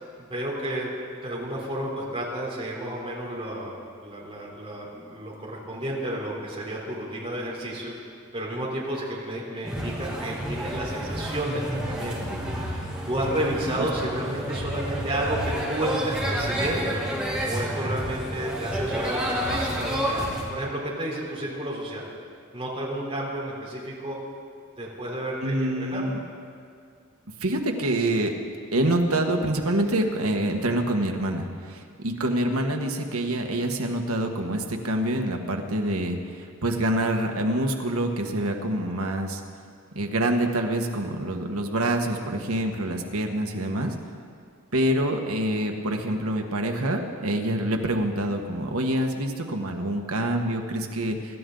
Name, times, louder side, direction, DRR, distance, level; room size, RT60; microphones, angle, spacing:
voice 1, 0.2-0.9 1.2-7.9 8.3-12.4 13.1-17.0 17.4-20.2 20.5-22.1 22.5-24.2 24.8-26.0, right 1 dB, 25° right, -4 dB, 3.8 m, -31 dB
sound 1, 9.6-20.4, equal, 5° right, 2.7 m, -30 dB
voice 2, 25.4-26.2 27.4-28.3 28.7-39.4 39.9-43.9 44.7-51.4, right 1 dB, 75° right, 3 dB, 1.5 m, -26 dB
25.0 x 13.0 x 4.0 m, 2.2 s
head